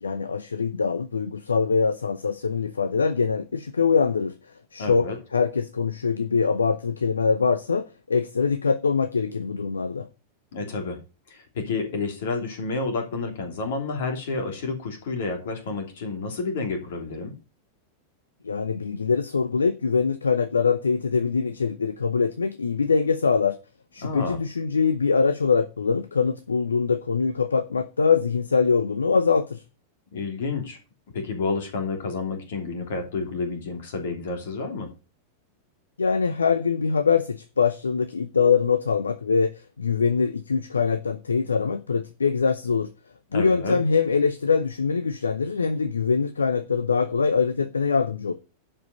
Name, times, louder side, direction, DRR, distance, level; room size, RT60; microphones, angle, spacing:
voice 1, 0.0-4.3 4.7-10.1 18.4-23.6 23.9-29.6 36.0-42.9 43.3-48.3, left 5 dB, 75° left, 0.7 m, -23 dB
voice 2, 4.8-5.1 10.5-11.0 11.3-17.3 24.0-24.4 30.1-30.8 31.1-34.9 43.3-43.8, left 3 dB, 55° left, 3.2 m, -30 dB
11.0 x 5.4 x 5.3 m
figure-of-eight pair, 90°, 0 cm